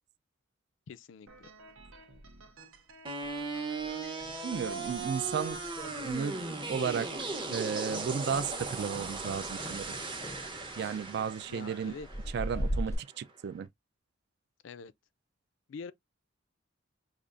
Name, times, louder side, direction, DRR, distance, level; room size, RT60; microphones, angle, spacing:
voice 1, 0.9-1.5 11.5-12.1 14.6-14.9 15.7-15.9, left 5 dB, 65° left, 0.4 m, -45 dB
sound 1, 1.3-6.4, right 3 dB, 75° right, 0.8 m, -54 dB
sound 2, 3.0-13.1, right 3 dB, 25° right, 0.7 m, -38 dB
voice 2, 4.4-5.6 6.0-6.4 6.7-7.2 7.5-9.9 10.8-11.9 12.3-13.7, right 7 dB, 55° right, 0.3 m, -34 dB
sound 3, 4.9-6.3 6.6-7.0 7.3-7.5 7.9-12.9, equal, 15° left, 0.5 m, -40 dB
5.0 x 2.4 x 2.4 m
head